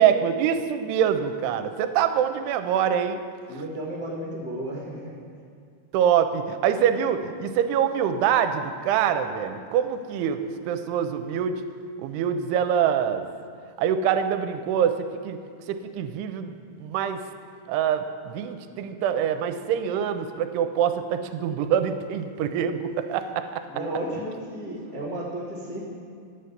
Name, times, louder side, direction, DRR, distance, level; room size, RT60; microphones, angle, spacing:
voice 1, 0.0-3.2 5.9-11.6 12.0-13.3 13.8-15.4 15.7-17.2 17.7-23.6, right 8 dB, 85° right, 9 dB, 2.6 m, -25 dB
voice 2, 3.5-5.2 23.7-25.8, right 1 dB, 75° left, -8 dB, 0.8 m, -33 dB
9.8 x 5.6 x 7.8 m, 2.3 s
omnidirectional pair, 4.7 m